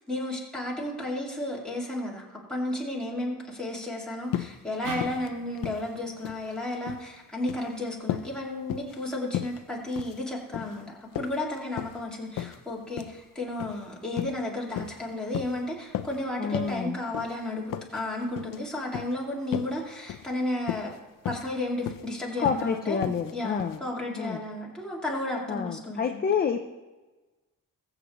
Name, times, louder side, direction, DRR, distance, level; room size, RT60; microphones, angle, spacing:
voice 1, 0.1-20.9 21.2-26.3, left 1 dB, ahead, -4 dB, 2.2 m, -33 dB
sound 1, 4.3-4.6 4.9-5.3 5.6-6.5 6.7-7.1 7.4-7.7 8.1-8.3 8.7-9.0 9.3-9.6 9.9-10.2 10.5-10.8 11.2-12.0 12.4-12.6 13.0-13.2 13.6-13.8 14.1-14.4 14.7-15.0 15.3-15.6 15.9-16.2 16.5-16.8 17.1-17.3 17.7-18.0 18.4-18.6 18.9-19.1 19.5-19.8 20.1-20.3 20.6-21.0 21.3-21.5 21.9-22.1 22.5-22.7 23.0-23.3 23.6-23.8, left 12 dB, 75° left, 0.6 m, -34 dB
sound 2, 4.8-8.1, right 4 dB, 75° right, 2.1 m, -43 dB
voice 2, 16.4-17.0 22.4-23.8 24.2-24.4 25.5-26.6, left 6 dB, 30° left, 5 dB, 0.5 m, -28 dB
21.0 x 7.9 x 3.0 m, 1.2 s
wide cardioid pair, 175°, 33 cm